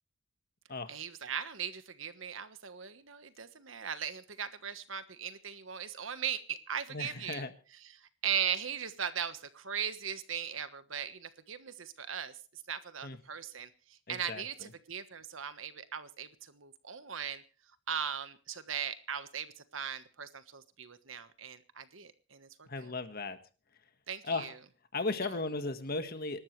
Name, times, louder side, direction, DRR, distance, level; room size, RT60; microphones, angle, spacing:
voice 1, 0.9-7.5 7.8-17.4 17.9-19.5 19.7-22.9 24.1-24.5, right 8 dB, 75° right, 12 dB, 1.3 m, -39 dB
voice 2, 6.9-7.5 13.0-13.2 14.1-14.7 22.6-23.4 24.2-24.5 24.9-26.4, left 3 dB, 50° left, 9 dB, 1.6 m, -36 dB
26.5 x 12.5 x 3.2 m, 0.35 s
head